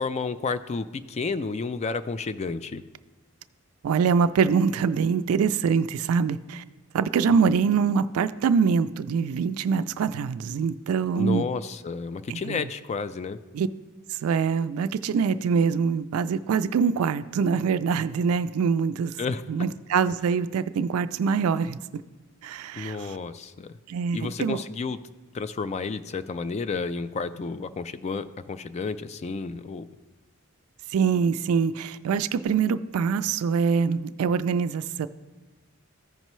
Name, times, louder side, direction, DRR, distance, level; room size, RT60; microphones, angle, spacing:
voice 1, 0.0-2.8 7.5-7.6 11.1-13.4 19.2-19.4 22.8-23.7 24.1-25.0 25.3-29.8, left 4 dB, 30° left, 13 dB, 0.3 m, -31 dB
voice 2, 3.8-6.6 6.9-11.4 12.3-12.6 13.5-13.7 14.2-19.1 19.5-21.8 22.4-23.0 23.9-24.6 30.9-35.1, right 6 dB, 80° right, 12 dB, 0.3 m, -24 dB
14.5 x 5.4 x 3.1 m, 1.2 s
head